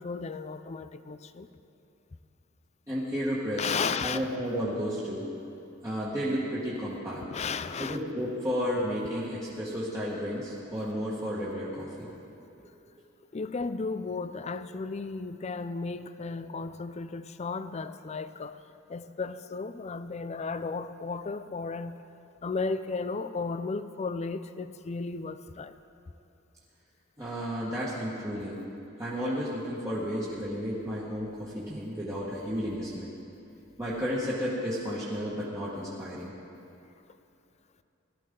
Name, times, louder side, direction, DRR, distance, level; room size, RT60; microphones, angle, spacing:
voice 1, 0.0-1.5 3.6-4.2 7.3-8.0 13.3-18.6 18.9-22.0 22.4-25.7, left 4 dB, 35° left, 12 dB, 0.4 m, -34 dB
voice 2, 2.9-5.2 5.8-7.2 7.8-12.1 27.2-28.6 29.0-33.1 33.8-36.3, equal, 15° right, -9 dB, 1.6 m, -32 dB
18.0 x 13.5 x 3.8 m, 2.8 s
head